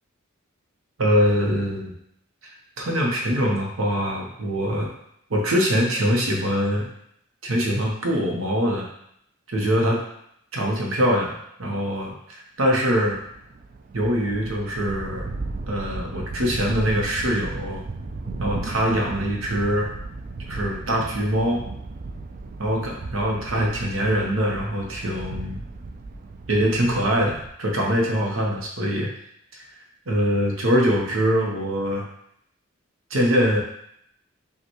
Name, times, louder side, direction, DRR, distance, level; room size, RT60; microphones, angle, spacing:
voice 1, 1.0-1.9 2.8-4.9 5.3-6.9 7.4-8.9 9.5-10.0 10.5-13.2 13.9-15.3 15.7-17.8 18.4-19.9 20.5-21.6 22.6-25.6 26.5-29.1 29.5-29.6 30.1-32.0 33.1-33.6, equal, 80° right, -1 dB, 0.9 m, -23 dB
sound 1, 13.2-27.5, right 3 dB, 45° right, 0.4 m, -35 dB
5.3 x 2.4 x 3.0 m, 0.72 s
head